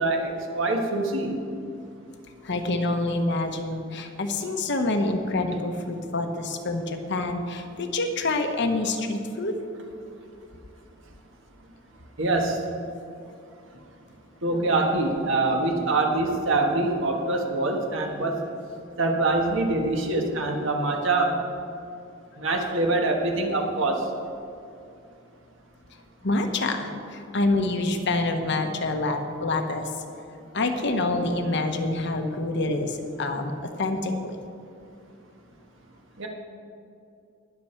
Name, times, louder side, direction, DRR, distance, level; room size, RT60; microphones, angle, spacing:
voice 1, 0.0-1.4 12.2-12.6 14.4-18.4 19.0-21.3 22.4-24.1 36.2-36.3, right 2 dB, 65° right, 1 dB, 1.5 m, -24 dB
voice 2, 2.4-9.5 26.2-29.9 30.5-33.5 33.8-34.4, left 2 dB, 60° left, 5 dB, 1.1 m, -27 dB
19.5 x 6.9 x 4.5 m, 2.6 s
head